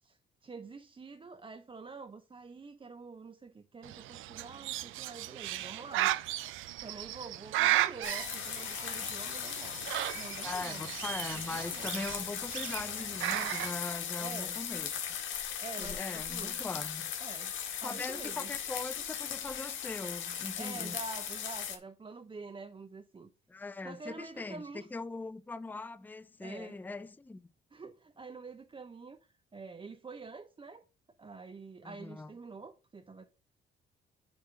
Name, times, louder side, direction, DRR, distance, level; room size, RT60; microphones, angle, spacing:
voice 1, 0.0-6.1 6.8-10.9 11.5-12.0 14.2-14.6 15.6-16.6 17.2-17.5 17.8-18.5 20.5-23.3 23.8-24.9 26.4-26.8 27.7-30.8 31.2-33.2, right 4 dB, 25° right, 0.7 m, -47 dB
Bird, 3.8-13.7, right 15 dB, 85° right, 0.5 m, -35 dB
sound 1, 8.0-21.8, left 9 dB, 80° left, 1.6 m, -38 dB
voice 2, 10.4-14.9 15.8-17.1 17.8-21.0 23.5-27.4 31.8-32.3, left 3 dB, 10° left, 0.4 m, -41 dB
8.7 x 3.6 x 5.9 m
cardioid pair, 90°, 20 cm